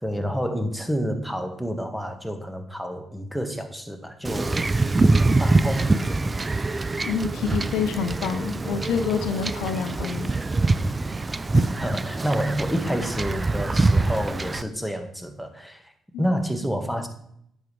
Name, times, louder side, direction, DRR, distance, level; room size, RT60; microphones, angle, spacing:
voice 1, 0.0-4.7 5.1-6.4 11.8-15.9 16.2-17.1, equal, ahead, 6 dB, 1.5 m, -29 dB
Wind / Ocean / Boat Water vehicle, 4.2-14.6, right 3 dB, 30° right, 0.5 m, -24 dB
voice 2, 7.0-10.3 11.5-11.6 16.1-16.2, left 7 dB, 80° left, 9 dB, 0.6 m, -27 dB
9.8 x 7.2 x 3.3 m, 0.70 s
supercardioid pair, 55°, 0 cm